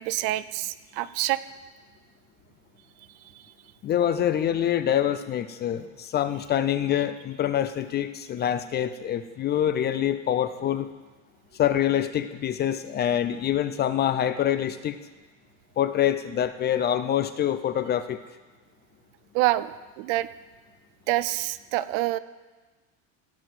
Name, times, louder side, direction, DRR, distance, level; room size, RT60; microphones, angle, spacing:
voice 1, 0.0-1.4 19.3-20.3 21.1-22.2, right 17 dB, 70° right, 16 dB, 0.6 m, -26 dB
voice 2, 3.8-10.9 11.6-15.0 15.8-18.2, left 10 dB, 25° left, 12 dB, 0.4 m, -25 dB
16.5 x 7.9 x 6.0 m, 1.3 s
cardioid pair, 140°, 39 cm